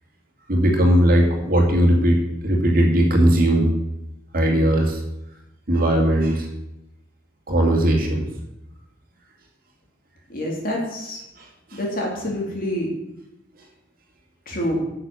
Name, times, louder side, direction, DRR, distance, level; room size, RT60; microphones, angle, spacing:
voice 1, 0.5-3.7 4.3-5.0 5.7-6.5 7.5-8.3 11.4-11.5 11.7-11.8, right 1 dB, 50° right, 1 dB, 2.4 m, -18 dB
voice 2, 10.3-11.2 11.7-12.9 14.5-14.8, left 1 dB, 50° left, -1 dB, 3.2 m, -26 dB
10.0 x 6.8 x 7.0 m, 0.89 s
head